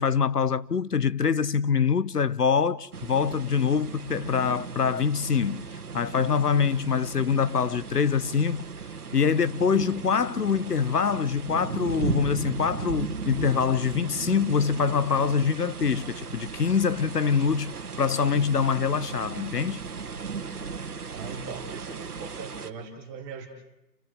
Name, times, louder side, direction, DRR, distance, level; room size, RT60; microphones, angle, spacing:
voice 1, 0.0-5.7 5.9-8.6 9.1-19.8, left 6 dB, 65° left, 1.1 m, -24 dB
sound 1, 2.9-22.7, right 5 dB, 60° right, 2.0 m, -36 dB
voice 2, 21.1-23.5, right 5 dB, 10° right, 1.6 m, -40 dB
29.5 x 13.5 x 7.9 m
figure-of-eight pair, 160°, 50 cm